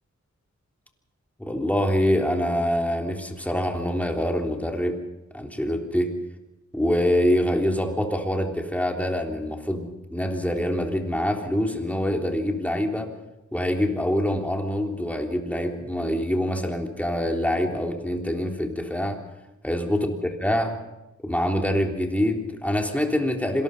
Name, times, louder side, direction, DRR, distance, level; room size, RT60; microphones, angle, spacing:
voice 1, 1.4-5.0 5.3-6.1 6.7-13.1 13.5-19.2 19.6-20.2 20.4-20.8 21.2-23.6, equal, 5° left, 2 dB, 3.5 m, -25 dB
26.5 x 19.5 x 5.5 m, 0.97 s
cardioid pair, 60°, 30 cm